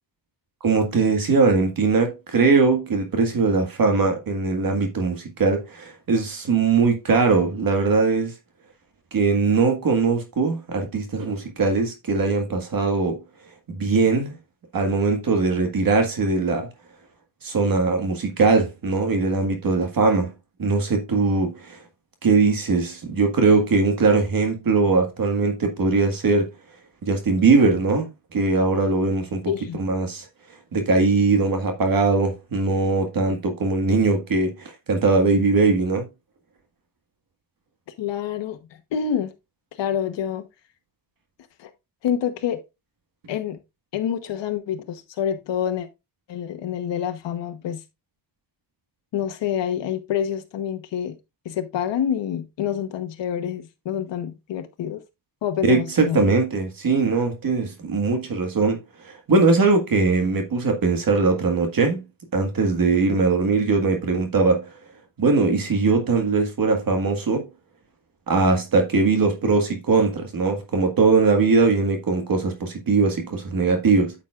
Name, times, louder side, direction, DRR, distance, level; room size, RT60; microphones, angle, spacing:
voice 1, 0.6-8.3 9.1-13.2 13.7-14.4 14.7-16.7 17.4-20.3 20.6-21.8 22.2-26.5 27.0-29.4 29.7-30.3 30.7-36.1 55.6-62.0 62.3-64.7 65.2-67.5 68.3-74.1, right 4 dB, 50° right, 1.7 m, -21 dB
voice 2, 29.5-29.8 38.0-38.6 38.9-39.3 39.8-40.4 41.6-41.7 42.0-42.6 43.3-43.6 43.9-45.9 46.3-47.8 49.1-51.2 51.4-55.0 55.4-56.3, left 9 dB, 70° left, 1.0 m, -27 dB
9.2 x 7.3 x 2.4 m
cardioid pair, 105°, 44 cm